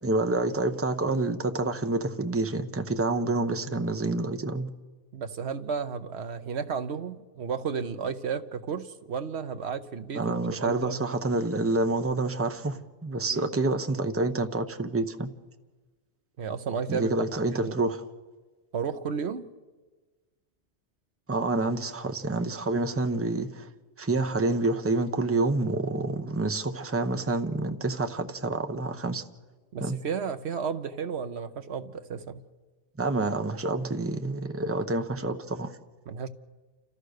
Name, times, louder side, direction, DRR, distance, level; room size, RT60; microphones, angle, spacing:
voice 1, 0.0-4.7 10.1-15.3 16.9-18.0 21.3-23.7 24.0-29.2 29.8-30.0 33.0-35.7, right 2 dB, 15° right, 0.8 m, -28 dB
voice 2, 5.1-11.0 13.3-13.5 16.4-17.3 17.5-17.8 18.7-19.5 29.7-32.4 36.1-36.3, right 6 dB, 65° right, 1.2 m, -33 dB
29.0 x 14.0 x 6.5 m
omnidirectional pair, 1.2 m